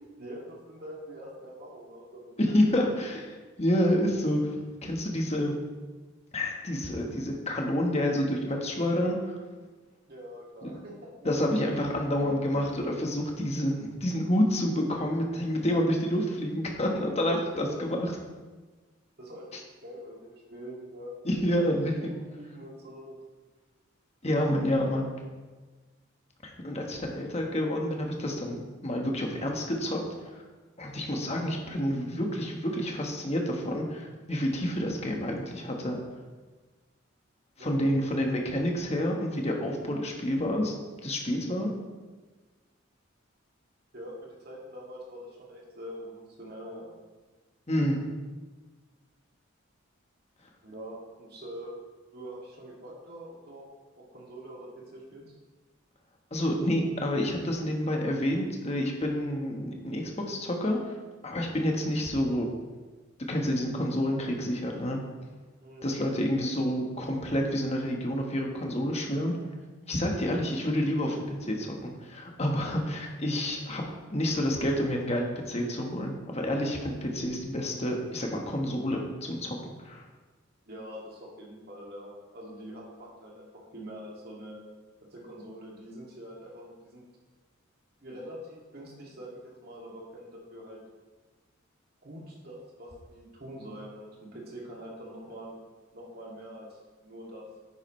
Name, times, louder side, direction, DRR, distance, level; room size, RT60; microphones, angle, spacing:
voice 1, 0.2-2.3 10.1-11.3 12.2-12.6 17.4-17.8 19.2-21.1 22.0-23.2 24.2-24.4 37.6-37.9 43.9-46.9 50.6-51.7 52.1-53.7 53.9-55.4 65.6-65.9 80.7-84.6 85.1-87.0 88.0-90.8 92.0-95.5 95.9-96.7 97.0-97.4, equal, 50° right, -3 dB, 2.4 m, -44 dB
voice 2, 2.4-3.2 3.6-4.5 4.8-5.5 6.3-9.3 10.6-10.7 11.2-18.1 21.2-22.1 24.2-25.1 26.4-30.0 30.8-36.0 37.6-40.7 41.0-41.7 47.7-48.0 56.3-60.9 61.2-62.5 63.2-65.0 65.8-69.3 69.9-71.1 71.5-73.8 74.1-80.0, equal, 30° left, 1 dB, 1.4 m, -28 dB
9.9 x 9.7 x 3.2 m, 1.3 s
head